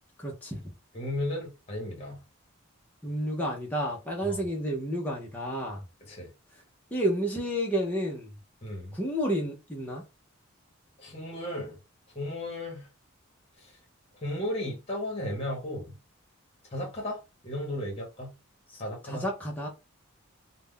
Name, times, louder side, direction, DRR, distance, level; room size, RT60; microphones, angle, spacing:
voice 1, 0.2-0.6 3.0-5.8 6.9-8.3 8.9-10.0 18.7-19.7, equal, 10° left, 0.5 m, -31 dB
voice 2, 0.9-2.2 4.2-4.4 6.1-6.3 8.6-8.9 11.0-11.8 12.1-12.9 13.6-13.7 14.2-15.9 16.7-18.3 18.8-19.2, left 1 dB, 30° left, 0.9 m, -35 dB
2.3 x 2.1 x 3.5 m
head